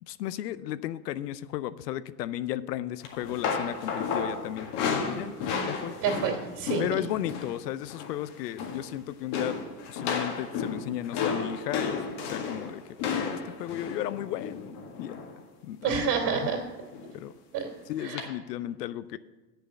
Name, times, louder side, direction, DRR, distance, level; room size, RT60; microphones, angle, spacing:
voice 1, 0.0-4.7 5.1-5.3 5.7-5.9 6.8-9.6 9.9-15.2 15.6-16.2 17.1-17.3 17.9-19.2, left 13 dB, 90° left, 16 dB, 0.6 m, -34 dB
sound 1, 3.0-7.6 7.8-8.2 8.5-8.9 9.3-15.3 16.2-16.6 16.9-17.1 18.2-18.3, left 5 dB, 65° left, 1.9 m, -33 dB
voice 2, 6.0-6.8 15.8-16.6 17.5-17.7 18.0-18.3, right 6 dB, 55° right, 2 dB, 3.1 m, -28 dB
8.3 x 6.8 x 6.9 m, 1.2 s
hypercardioid pair, 95°, 47 cm